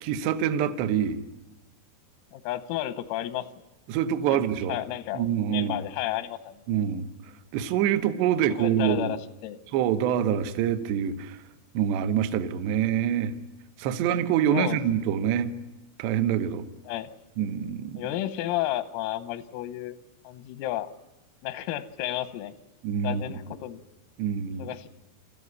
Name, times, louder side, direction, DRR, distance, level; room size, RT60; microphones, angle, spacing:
voice 1, 0.0-1.2 3.9-4.8 5.1-5.8 6.7-7.1 7.5-9.1 9.7-11.4 11.7-13.3 13.8-15.5 16.0-16.7 17.4-18.0 22.8-23.2 24.2-24.7, right 9 dB, 70° right, 9 dB, 2.9 m, -25 dB
voice 2, 2.3-3.5 4.3-4.4 4.7-5.2 5.5-6.6 8.5-9.6 14.5-14.8 16.9-17.2 18.0-20.0 20.3-20.9 21.4-22.5 23.0-23.8 24.6-24.9, left 14 dB, 90° left, 12 dB, 3.6 m, -32 dB
27.5 x 14.5 x 9.6 m, 1.0 s
omnidirectional pair, 5.9 m